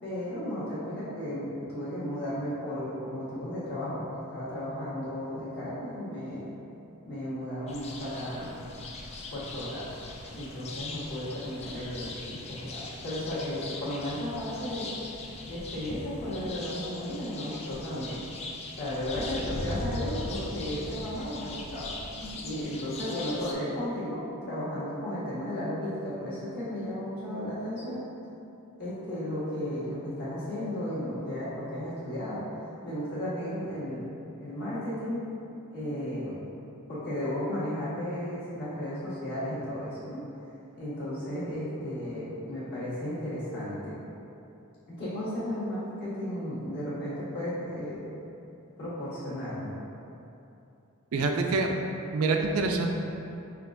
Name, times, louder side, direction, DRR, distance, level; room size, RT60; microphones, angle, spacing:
voice 1, 0.0-6.4 7.0-8.6 9.3-9.9 10.3-14.9 15.4-18.2 18.8-28.1 28.8-32.4 32.8-34.1 34.4-35.2 35.7-36.4 36.9-40.2 40.7-43.9 44.9-48.0 48.8-49.7, left 1 dB, 50° left, -12 dB, 1.5 m, -34 dB
sound 1, 7.7-23.5, left 2 dB, 30° left, 0.3 m, -40 dB
voice 2, 51.1-51.7 52.1-52.9, right 3 dB, 80° right, 3 dB, 0.4 m, -26 dB
5.6 x 2.4 x 2.5 m, 2.8 s
head